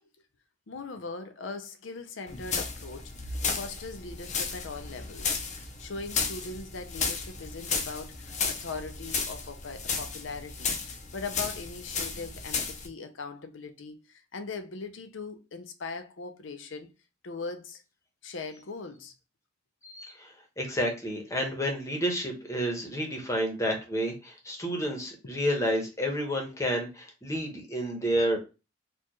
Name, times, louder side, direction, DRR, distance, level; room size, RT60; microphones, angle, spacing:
voice 1, 0.7-5.4 5.8-16.9 17.2-17.8 18.2-19.1, left 4 dB, 75° left, 0.6 m, -40 dB
sound 1, 2.3-12.9, left 5 dB, 40° left, 0.7 m, -34 dB
voice 2, 19.8-28.4, equal, 15° left, 1.0 m, -30 dB
4.4 x 2.5 x 3.0 m
head